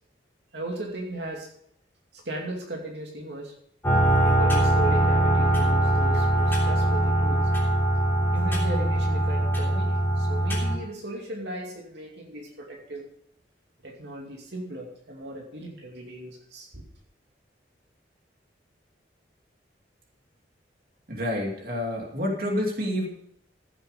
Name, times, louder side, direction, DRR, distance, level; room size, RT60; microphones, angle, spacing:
voice 1, 0.5-1.5 2.1-3.5 4.2-7.4 8.3-13.1 13.8-16.8, right 1 dB, 70° right, 0 dB, 2.5 m, -37 dB
sound 1, 3.8-10.8, right 1 dB, 10° left, 3.3 m, -22 dB
voice 2, 21.1-23.1, left 1 dB, 50° right, 0 dB, 2.7 m, -28 dB
15.5 x 7.9 x 5.1 m, 0.69 s
head